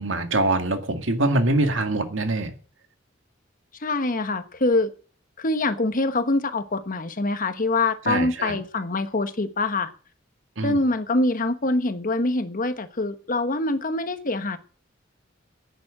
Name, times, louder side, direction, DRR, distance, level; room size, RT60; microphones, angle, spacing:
voice 1, 0.0-2.5 8.1-8.6 10.6-10.8, right 2 dB, 80° right, 2.0 m, -24 dB
voice 2, 3.8-4.9 5.4-9.9 10.6-14.6, left 2 dB, 45° left, 1.2 m, -24 dB
11.5 x 9.2 x 8.8 m
head